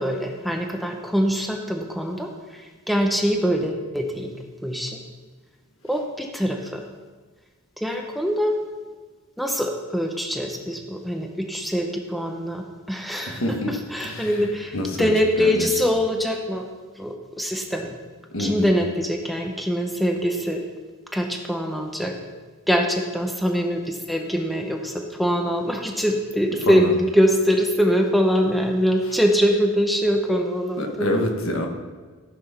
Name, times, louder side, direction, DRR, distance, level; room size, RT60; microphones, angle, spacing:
voice 1, 0.0-4.3 4.6-5.0 5.8-6.9 7.8-8.6 9.4-16.7 17.0-18.0 18.4-20.6 21.1-22.2 22.7-31.2, equal, ahead, 2 dB, 0.8 m, -23 dB
voice 2, 13.3-13.7 14.0-14.4 14.7-15.9 18.3-18.7 26.6-26.9 29.1-29.2 30.8-31.7, left 1 dB, 65° left, 3 dB, 1.5 m, -27 dB
14.0 x 6.1 x 5.8 m, 1.4 s
head